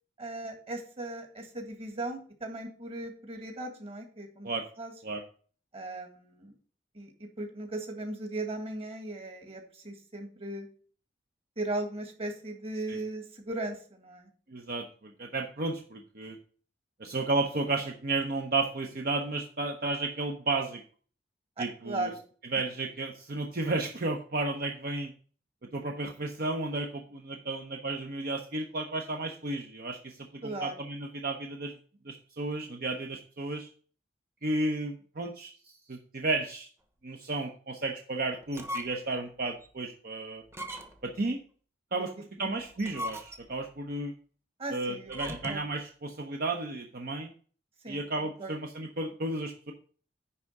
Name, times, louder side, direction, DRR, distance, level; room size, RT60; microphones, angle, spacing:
voice 1, 0.2-4.5 4.8-4.9 5.7-6.5 6.9-10.7 11.6-14.3 21.6-22.2 30.4-30.8 42.4-42.6 44.6-45.6 47.8-48.5, right 2 dB, 35° right, 4 dB, 1.8 m, -37 dB
voice 2, 14.5-16.4 17.0-20.8 21.6-22.1 22.5-25.1 25.7-30.2 30.4-31.7 32.0-33.7 34.4-35.5 35.9-36.7 37.0-40.4 41.0-41.4 41.9-42.1 42.4-44.1 44.7-47.3 47.9-49.7, right 2 dB, 55° right, 2 dB, 0.8 m, -33 dB
sound 1, 38.4-39.2 39.6-39.7 40.5-41.2 42.6-43.7 45.1-45.7, left 1 dB, 15° right, 0.9 m, -40 dB
10.0 x 3.6 x 6.6 m, 0.43 s
head